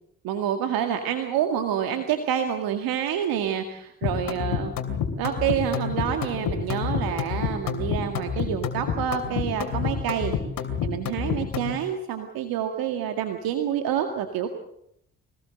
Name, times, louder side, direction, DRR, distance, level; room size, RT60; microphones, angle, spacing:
voice 1, 0.2-4.7 5.2-10.3 10.8-14.5, right 9 dB, 75° right, 6 dB, 2.1 m, -28 dB
sound 1, 4.0-11.8, left 7 dB, 65° left, 3.1 m, -28 dB
24.0 x 19.0 x 7.8 m, 0.72 s
hypercardioid pair, 50°, 36 cm